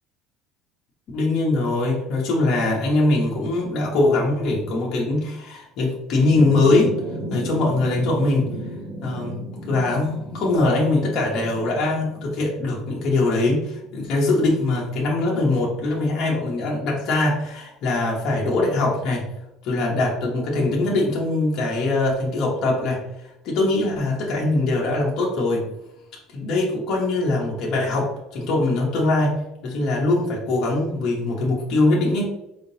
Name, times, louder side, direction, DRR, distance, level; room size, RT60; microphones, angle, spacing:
voice 1, 1.1-6.9 7.3-8.5 9.0-9.4 9.7-19.2 19.6-23.0 23.4-25.7 26.3-29.3 29.6-32.3, left 2 dB, 40° left, -3 dB, 0.9 m, -22 dB
sound 1, 6.3-14.1, right 1 dB, 15° right, 0.7 m, -34 dB
4.6 x 3.6 x 2.7 m, 0.86 s
cardioid pair, 180°, 0 cm